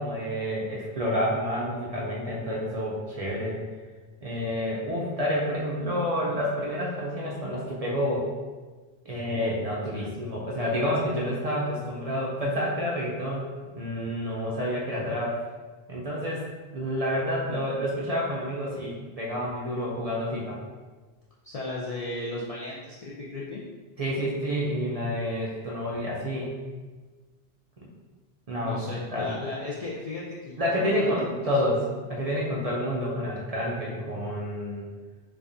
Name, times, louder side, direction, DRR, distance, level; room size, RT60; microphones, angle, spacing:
voice 1, 0.0-3.6 4.2-8.3 9.1-13.4 13.8-15.4 15.9-20.6 24.0-26.5 28.5-28.8 29.1-29.3 30.6-34.9, equal, 45° right, -5 dB, 0.5 m, -29 dB
voice 2, 21.4-23.6 28.6-31.4, left 2 dB, 55° left, -7 dB, 0.4 m, -35 dB
4.6 x 2.3 x 2.5 m, 1.4 s
omnidirectional pair, 1.1 m